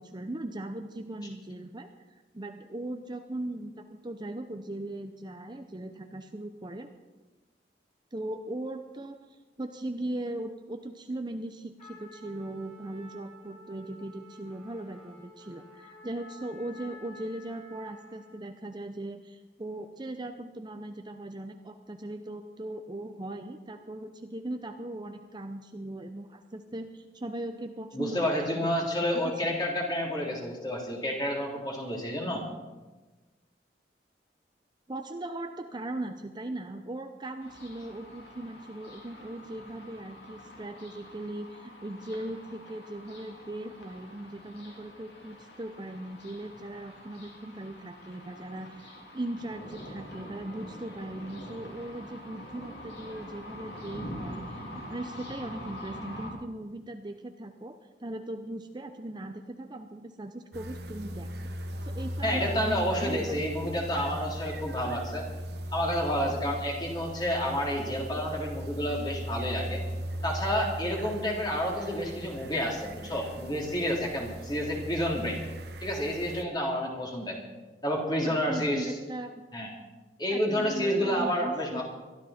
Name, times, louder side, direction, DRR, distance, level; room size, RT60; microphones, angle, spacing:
voice 1, 0.0-1.9 2.3-6.9 8.1-29.3 34.9-61.6 61.8-63.8 78.2-79.3 80.3-81.8, right 1 dB, 25° right, 6 dB, 0.7 m, -39 dB
Trumpet, 11.8-18.4, left 1 dB, 40° left, 7.3 m, -51 dB
voice 2, 27.9-32.5 62.2-65.3 65.7-69.8 70.2-75.4 75.8-77.4 77.8-78.9 79.5-79.7 80.2-81.8, equal, 25° left, -1 dB, 3.4 m, -30 dB
sound 1, 37.4-56.3, equal, 75° left, 3.5 m, -45 dB
sound 2, 60.5-76.4, equal, 65° right, 1.3 m, -38 dB
22.5 x 13.0 x 4.3 m, 1.2 s
head